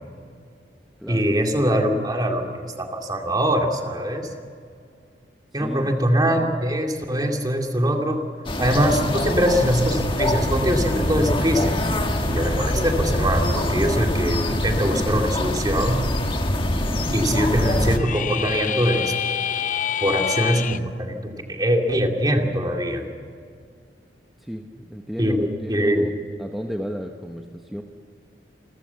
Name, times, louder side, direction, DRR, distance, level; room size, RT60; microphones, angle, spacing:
voice 1, 1.1-4.3 5.5-8.2 8.6-11.8 12.2-16.0 17.1-19.1 20.0-23.0 25.2-26.1, equal, 25° right, 3 dB, 2.4 m, -22 dB
voice 2, 5.5-6.0 6.4-6.5 24.4-26.1 26.4-27.8, equal, ahead, 2 dB, 1.0 m, -34 dB
sound 1, 8.5-18.0, left 1 dB, 30° left, 1.6 m, -24 dB
sound 2, 17.9-20.8, left 9 dB, 45° left, 0.5 m, -26 dB
28.0 x 14.0 x 7.1 m, 2.2 s
head